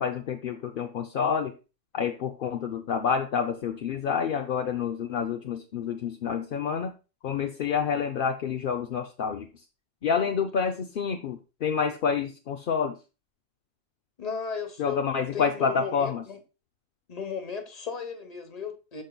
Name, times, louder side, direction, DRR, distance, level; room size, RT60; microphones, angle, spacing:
voice 1, 0.0-1.5 1.9-6.9 7.2-9.5 10.0-13.0 14.8-16.2, left 6 dB, 55° left, 0.6 m, -28 dB
voice 2, 14.2-15.0 15.3-16.4 17.1-19.0, left 6 dB, 30° left, 1.1 m, -35 dB
13.0 x 5.2 x 2.3 m
omnidirectional pair, 1.4 m